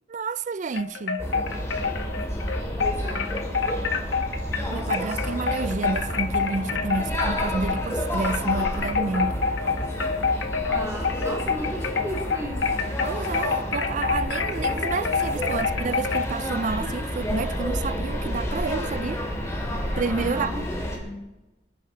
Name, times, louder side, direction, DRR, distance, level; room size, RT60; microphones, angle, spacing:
voice 1, 0.1-1.3 4.7-9.4 13.0-19.2 20.0-20.5, right 4 dB, 40° right, 0.4 m, -30 dB
sound 1, 0.7-7.9 8.2-16.3, left 5 dB, 75° left, 1.6 m, -27 dB
sound 2, 1.2-21.0, equal, 15° left, 2.8 m, -30 dB
voice 2, 2.8-3.4 10.7-12.7 20.2-20.6 20.9-21.3, equal, 15° right, 3.0 m, -35 dB
28.0 x 10.0 x 4.1 m
head